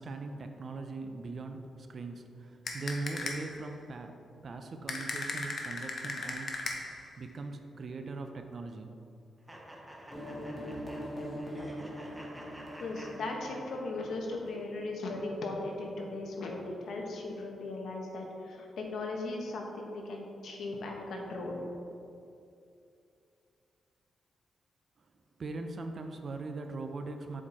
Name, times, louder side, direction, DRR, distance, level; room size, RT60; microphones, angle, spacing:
voice 1, 0.0-4.2 4.4-6.7 7.2-8.9 25.4-27.4, right 3 dB, 40° right, 6 dB, 0.4 m, -40 dB
sound 1, 2.7-3.6 4.9-7.1, left 3 dB, 40° left, 0.7 m, -37 dB
sound 2, 9.5-14.1, right 1 dB, 5° right, 0.7 m, -50 dB
sound 3, 10.1-15.5, equal, 20° left, 1.2 m, -43 dB
voice 2, 12.8-21.6, left 2 dB, 65° left, 0 dB, 1.0 m, -38 dB
7.3 x 4.3 x 4.3 m, 2.6 s
wide cardioid pair, 175°, 0 cm